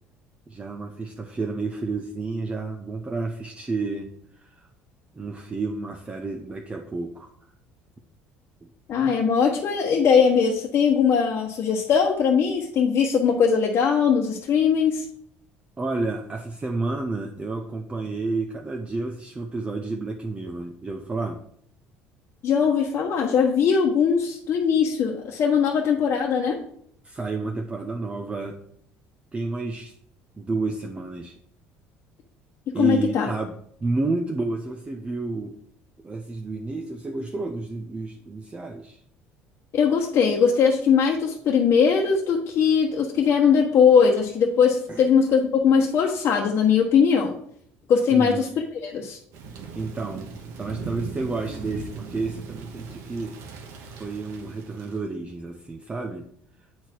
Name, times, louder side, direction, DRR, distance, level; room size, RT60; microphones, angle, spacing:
voice 1, 0.5-4.1 4.4-4.5 5.1-7.3 15.8-21.4 27.0-28.6 29.3-29.9 30.4-31.3 32.7-33.5 33.8-35.5 36.0-39.0 44.9-45.1 48.1-48.5 49.7-53.3 53.9-56.3, right 3 dB, 20° right, 3 dB, 0.8 m, -30 dB
voice 2, 8.9-15.0 22.4-26.6 32.7-33.3 39.7-47.3 47.9-48.5 48.8-49.2, left 6 dB, 55° left, -2 dB, 1.1 m, -20 dB
Thunder / Rain, 49.3-55.0, right 5 dB, 75° right, 1.4 m, -39 dB
8.4 x 4.4 x 4.5 m, 0.66 s
supercardioid pair, 95°, 5 cm